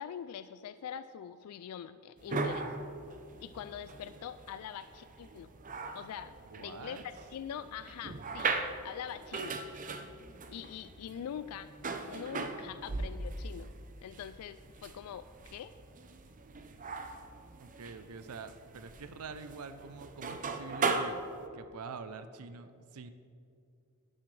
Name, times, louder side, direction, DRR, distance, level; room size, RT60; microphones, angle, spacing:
voice 1, 0.0-2.7 3.4-5.5 5.9-6.3 6.6-8.6 8.8-9.6 10.5-11.7 12.1-13.7 14.0-15.7, left 8 dB, 85° left, 12 dB, 0.3 m, -43 dB
sound 1, 2.2-21.5, right 3 dB, 35° right, 0.6 m, -39 dB
voice 2, 6.5-7.0 17.6-21.2 21.5-23.1, right 4 dB, 80° right, 10 dB, 0.5 m, -46 dB
12.0 x 10.5 x 3.3 m, 2.5 s
head